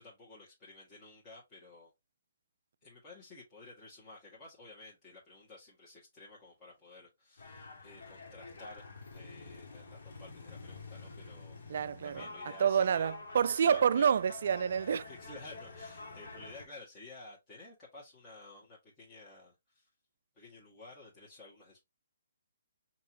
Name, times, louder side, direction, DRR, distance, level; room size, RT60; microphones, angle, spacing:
voice 1, 0.0-1.9 2.8-8.8 9.1-13.1 13.6-14.1 15.1-19.9 20.4-21.8, left 2 dB, 20° left, 1.8 m, -53 dB
sound 1, 7.4-16.6, left 3 dB, 65° left, 1.7 m, -48 dB
voice 2, 11.7-12.3 12.6-15.1, right 7 dB, 55° right, 0.3 m, -28 dB
5.4 x 2.9 x 2.9 m
figure-of-eight pair, 140°, 0 cm